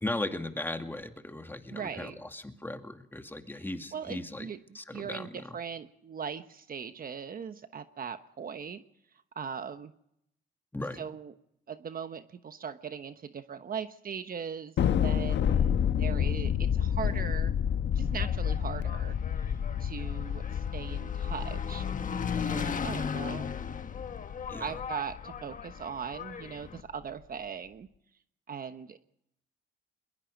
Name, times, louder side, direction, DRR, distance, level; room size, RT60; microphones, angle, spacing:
voice 1, 0.0-4.5 4.7-5.6 10.7-11.0 24.5-24.8, left 1 dB, 10° left, 6 dB, 2.3 m, -37 dB
voice 2, 1.7-2.2 3.9-4.6 4.9-8.8 9.3-9.9 10.9-11.3 11.7-17.5 17.9-19.2 19.4-21.8 22.4-23.5 24.6-27.9 28.5-29.0, right 7 dB, 45° right, 9 dB, 1.2 m, -39 dB
Thunder, 14.8-25.4, left 8 dB, 65° left, 1.4 m, -30 dB
Engine, 18.0-26.8, left 6 dB, 40° left, 1.3 m, -38 dB
22.5 x 22.0 x 5.3 m, 0.75 s
cardioid pair, 90°, 20 cm